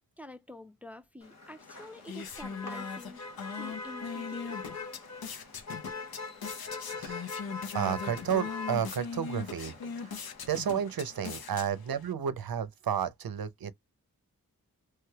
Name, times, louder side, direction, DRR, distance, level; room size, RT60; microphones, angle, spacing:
voice 1, 0.2-4.8, left 1 dB, 5° right, 0.4 m, -48 dB
Motor vehicle (road), 1.2-11.7, left 4 dB, 45° left, 1.1 m, -43 dB
sound 1, 1.6-12.1, left 6 dB, 80° left, 0.6 m, -41 dB
voice 2, 6.9-7.3 7.7-10.2 10.5-13.7, right 8 dB, 75° right, 0.5 m, -32 dB
3.2 x 3.1 x 2.2 m
wide cardioid pair, 85°, 36 cm